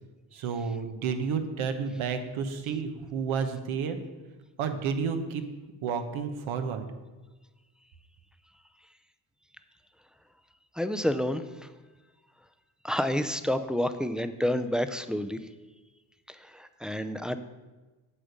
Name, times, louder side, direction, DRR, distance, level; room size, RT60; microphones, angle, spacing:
voice 1, 0.3-4.0 4.6-5.4 5.8-6.9, right 6 dB, 75° right, 7 dB, 1.1 m, -31 dB
voice 2, 10.8-11.4 12.8-15.4 16.3-17.4, left 1 dB, ahead, 10 dB, 0.5 m, -29 dB
8.8 x 6.8 x 5.2 m, 1.2 s
supercardioid pair, 75°, 48 cm